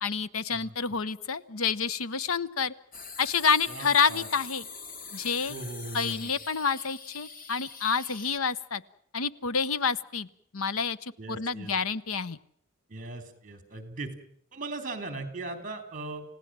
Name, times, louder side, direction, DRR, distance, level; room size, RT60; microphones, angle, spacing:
voice 1, 0.0-2.7 3.2-4.7 5.1-5.6 5.9-8.8 9.1-10.3 10.5-12.4, left 5 dB, 85° left, 16 dB, 0.9 m, -28 dB
sound 1, 2.9-8.4, left 5 dB, 45° left, 2.3 m, -44 dB
voice 2, 3.7-4.3 5.5-6.3 11.2-11.7 12.9-14.1 14.5-16.2, right 2 dB, 40° right, 8 dB, 3.5 m, -38 dB
29.5 x 17.0 x 7.6 m, 0.68 s
head